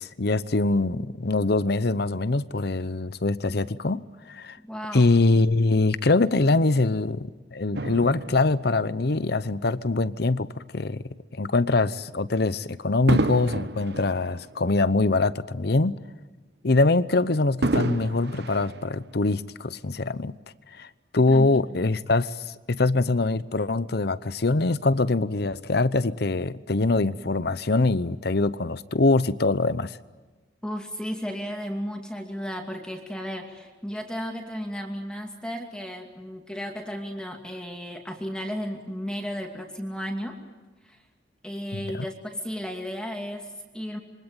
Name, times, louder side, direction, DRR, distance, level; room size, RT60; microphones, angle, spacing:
voice 1, 0.0-4.6 4.9-11.0 11.3-16.0 16.6-20.3 20.8-30.0 41.7-41.9, left 3 dB, 60° left, 16 dB, 0.8 m, -23 dB
voice 2, 4.6-5.1 21.3-21.6 30.6-40.4 40.8-41.0 41.4-44.0, equal, 5° left, 2 dB, 2.5 m, -34 dB
Fireworks, 7.7-10.3 11.0-11.2 13.1-15.6 16.0-16.1 17.6-19.5 20.2-20.3, right 2 dB, 65° right, 1.1 m, -31 dB
27.0 x 24.0 x 9.1 m, 1.2 s
head